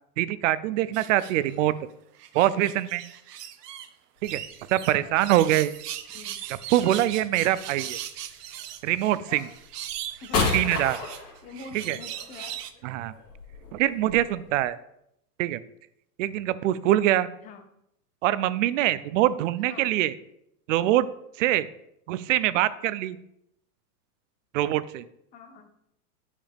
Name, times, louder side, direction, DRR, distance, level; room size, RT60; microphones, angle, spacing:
voice 1, 0.2-1.7 2.3-3.0 4.2-4.4 4.7-5.7 6.5-8.0 8.8-9.5 10.5-11.0 11.7-12.0 12.8-13.1 13.7-14.8 15.4-15.6 16.2-17.3 18.2-20.1 20.7-21.1 21.4-21.7 22.1-23.2 24.5-25.0, right 14 dB, 55° right, 16 dB, 0.5 m, -24 dB
sound 1, 0.9-1.7 2.1-3.9 4.2-12.7, right 11 dB, 85° right, 0.8 m, -39 dB
sound 2, 4.2-4.3 5.0-5.7 7.1-7.6 8.5-8.7 9.3-14.6, left 4 dB, 35° left, 2.5 m, -32 dB
voice 2, 7.3-7.7 10.2-10.5 11.4-12.6 17.4-17.6 19.7-19.9 25.3-25.7, left 4 dB, 15° left, 5 dB, 0.6 m, -45 dB
8.8 x 5.0 x 3.5 m, 0.77 s
supercardioid pair, 140°, 47 cm